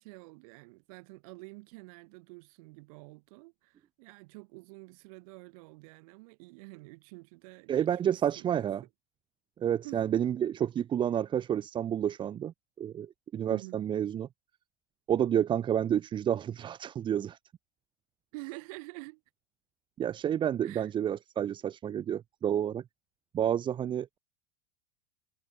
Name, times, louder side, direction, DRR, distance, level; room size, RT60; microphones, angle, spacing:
voice 1, 0.0-8.7 9.8-10.0 13.5-13.9 18.3-19.2 20.6-20.9, right 27 dB, 65° right, 3.7 m, -48 dB
voice 2, 7.7-8.8 9.6-14.3 15.1-17.4 20.0-22.8 23.3-24.2, right 9 dB, 25° right, 0.4 m, -30 dB
hypercardioid pair, 85°, 20 cm